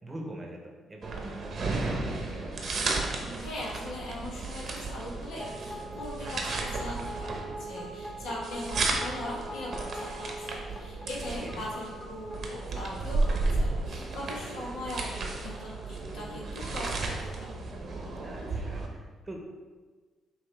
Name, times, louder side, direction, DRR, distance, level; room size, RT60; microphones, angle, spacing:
voice 1, 0.0-3.0 11.4-11.7 18.2-19.4, right 1 dB, 20° right, 1 dB, 0.8 m, -43 dB
sound 1, 1.0-18.9, right 3 dB, 55° right, 0.7 m, -34 dB
voice 2, 3.4-17.5, left 1 dB, 85° left, -5 dB, 1.3 m, -40 dB
sound 2, 5.4-13.9, right 1 dB, 15° left, 0.8 m, -43 dB
5.3 x 2.8 x 3.3 m, 1.4 s
cardioid pair, 90°, 0 cm